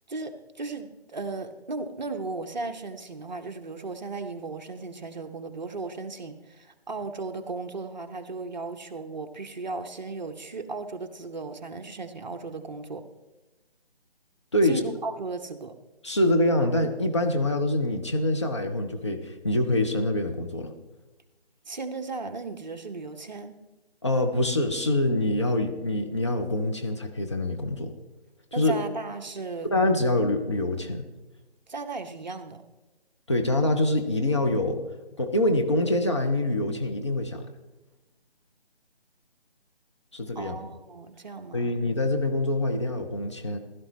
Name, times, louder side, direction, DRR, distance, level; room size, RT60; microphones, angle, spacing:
voice 1, 0.1-13.0 14.6-15.7 21.7-23.5 28.5-29.7 31.7-32.6 40.3-41.7, right 3 dB, 45° right, 6 dB, 0.9 m, -36 dB
voice 2, 16.0-20.7 24.0-27.9 28.6-28.7 29.7-31.1 33.3-34.8 35.2-37.4 40.1-40.6 41.5-43.6, left 1 dB, 25° left, 3 dB, 0.7 m, -25 dB
15.5 x 12.0 x 3.1 m, 1.1 s
figure-of-eight pair, 155°, 32 cm